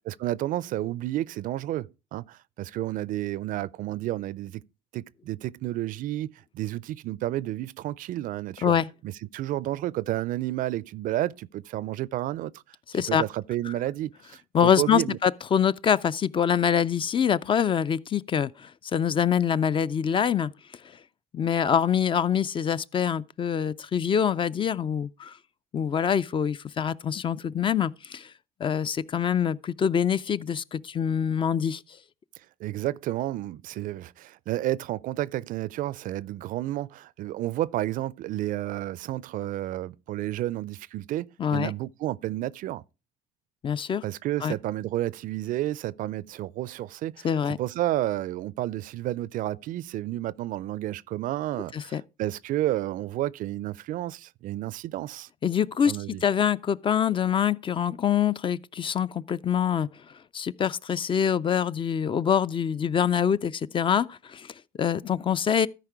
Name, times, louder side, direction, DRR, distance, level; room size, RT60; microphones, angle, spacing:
voice 1, 0.1-4.6 4.9-8.7 9.3-12.6 13.1-15.2 32.6-42.8 44.0-47.3 47.6-55.3 55.8-56.2, right 14 dB, 65° right, 0.4 m, -31 dB
voice 2, 12.9-13.2 14.5-20.5 21.3-25.3 25.7-28.3 28.6-31.8 41.4-41.7 43.6-44.0 44.4-44.5 47.2-47.6 51.7-52.0 55.4-55.9 56.2-59.9 60.3-65.7, left 8 dB, 35° left, 0.4 m, -25 dB
13.5 x 4.9 x 4.6 m
cardioid pair, 90°, 15 cm